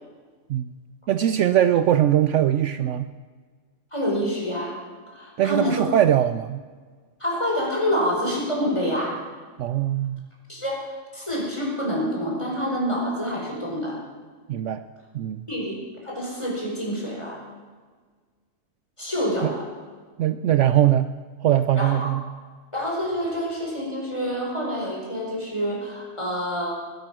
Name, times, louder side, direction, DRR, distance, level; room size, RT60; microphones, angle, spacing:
voice 1, 1.1-3.1 5.4-6.6 9.6-10.3 14.5-14.8 15.1-15.4 19.4-19.5 20.2-21.1 21.4-22.2, right 11 dB, 70° right, 11 dB, 0.9 m, -21 dB
voice 2, 3.9-4.8 5.1-5.8 7.2-9.2 10.5-10.9 11.1-14.0 15.5-15.8 16.0-17.4 19.0-19.7 21.7-22.1 22.7-26.7, equal, 20° left, -2 dB, 4.6 m, -27 dB
20.0 x 11.0 x 6.1 m, 1.5 s
omnidirectional pair, 1.4 m